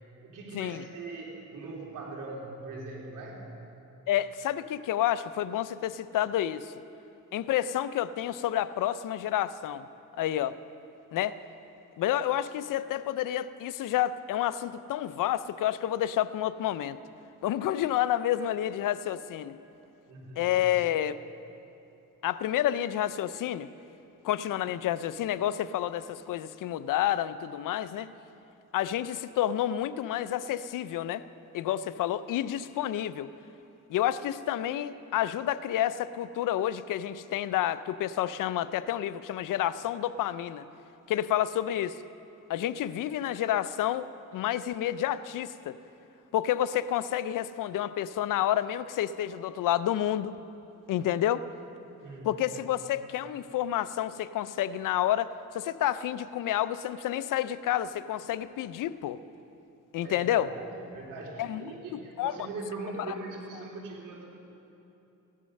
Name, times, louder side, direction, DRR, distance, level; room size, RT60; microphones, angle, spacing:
voice 1, 0.2-3.4 20.1-20.5 52.0-52.4 60.0-64.2, right 3 dB, 80° right, -2 dB, 3.3 m, -41 dB
voice 2, 4.1-6.7 7.3-9.9 10.2-10.6 11.1-11.4 12.0-17.0 17.4-19.6 20.4-21.2 22.2-23.7 24.2-28.1 28.7-31.2 31.5-33.3 33.9-40.6 41.1-42.0 42.5-45.8 46.3-50.3 50.9-51.4 52.2-59.2 59.9-60.5 61.4-61.6 61.9-62.3 63.1-63.2, left 12 dB, 80° left, 15 dB, 0.6 m, -29 dB
16.0 x 11.0 x 6.5 m, 2.8 s
cardioid pair, 85°, 32 cm